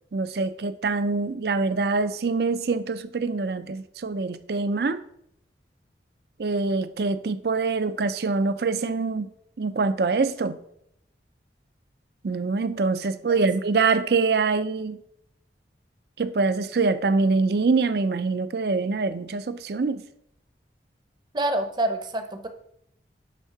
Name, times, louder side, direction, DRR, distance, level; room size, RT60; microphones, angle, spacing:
voice 1, 0.1-5.0 6.4-9.3 9.6-10.6 12.2-15.0 16.2-20.0, right 4 dB, 60° right, 0.5 m, -24 dB
voice 2, 21.3-22.5, right 1 dB, 25° right, 0.7 m, -26 dB
8.2 x 3.6 x 5.9 m
head